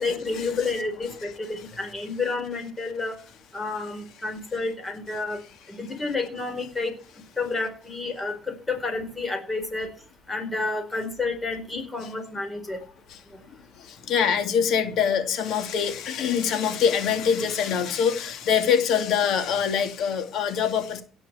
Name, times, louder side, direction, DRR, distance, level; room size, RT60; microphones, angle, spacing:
voice 1, 0.0-3.1 3.5-5.4 5.7-6.9 7.4-9.9 10.3-12.8, left 3 dB, 15° left, 4.5 m, -30 dB
voice 2, 13.8-21.0, left 7 dB, 65° left, 2.5 m, -24 dB
17.0 x 6.3 x 8.1 m
cardioid pair, 115°, 0 cm